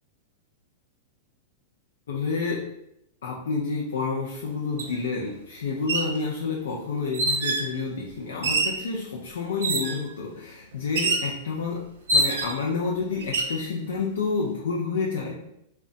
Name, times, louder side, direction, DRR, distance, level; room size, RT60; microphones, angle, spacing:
voice 1, 2.1-2.7 3.2-15.4, left 4 dB, 75° left, -3 dB, 0.4 m, -29 dB
sound 1, 4.8-4.9 5.7-6.1 7.1-7.7 8.4-8.8 9.6-10.0 11.0-11.3 12.1-12.7 13.2-13.6, right 2 dB, 75° right, 0.4 m, -25 dB
2.7 x 2.1 x 2.5 m, 0.77 s
hypercardioid pair, 105°, 0 cm